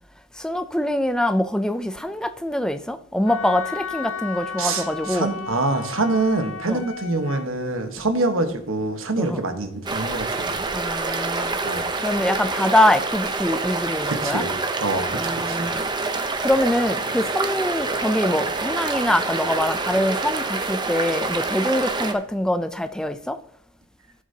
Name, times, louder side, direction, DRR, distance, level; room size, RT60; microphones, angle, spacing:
voice 1, 0.4-5.3 6.7-6.8 9.2-9.4 10.7-14.5 15.1-15.8 16.4-23.4, left 1 dB, 5° left, 9 dB, 0.4 m, -24 dB
Wind instrument woodwind instrument, 3.3-7.5, left 6 dB, 85° left, 0.7 m, -34 dB
voice 2, 4.6-10.6 11.6-11.8 14.1-14.5 14.8-15.7, right 2 dB, 80° right, 7 dB, 1.3 m, -25 dB
sound 1, 9.9-22.1, right 3 dB, 20° right, 0.7 m, -26 dB
14.5 x 7.3 x 2.8 m, 0.71 s
head